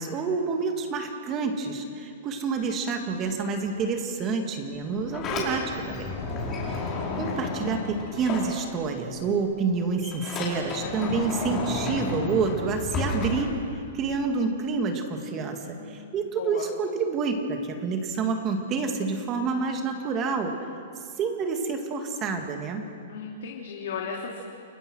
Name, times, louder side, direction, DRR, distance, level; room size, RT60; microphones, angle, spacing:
voice 1, 0.0-6.2 7.2-13.6 13.9-20.6 21.2-22.9, right 4 dB, 25° right, 4 dB, 2.1 m, -28 dB
Sliding door, 4.8-9.1 9.4-14.1, left 3 dB, 20° left, 5.2 m, -32 dB
voice 2, 15.7-16.7 23.1-24.4, left 6 dB, 70° left, -1 dB, 3.0 m, -36 dB
29.5 x 21.0 x 6.3 m, 2.3 s
hypercardioid pair, 160°, 0 cm